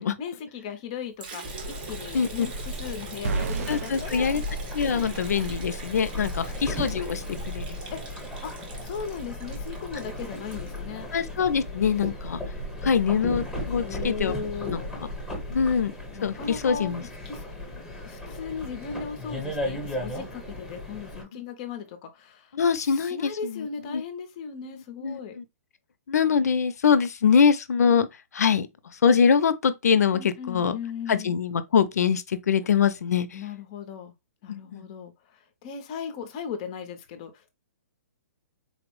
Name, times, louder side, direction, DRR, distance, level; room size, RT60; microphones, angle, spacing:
voice 1, 0.2-4.4 6.1-6.6 7.9-8.0 8.4-8.5 8.8-11.1 13.7-15.0 16.1-17.4 18.0-25.4 30.1-31.3 33.3-34.1 34.4-37.5, left 6 dB, 25° left, 0.5 m, -37 dB
Liquid, 1.2-11.3, right 5 dB, 35° right, 0.7 m, -43 dB
sound 1, 1.4-21.2, left 1 dB, ahead, 0.9 m, -35 dB
voice 2, 2.1-2.5 3.7-4.4 4.7-7.8 11.1-12.4 12.8-14.3 14.7-15.1 15.5-15.9 16.2-17.0 22.5-24.0 24.7-25.4 26.1-28.1 28.3-28.7 29.0-30.8 31.1-33.3 34.5-34.9, left 6 dB, 80° left, 0.5 m, -24 dB
sound 2, 3.2-5.4, right 3 dB, 65° right, 0.4 m, -32 dB
4.0 x 2.0 x 3.0 m
hypercardioid pair, 175°, 9 cm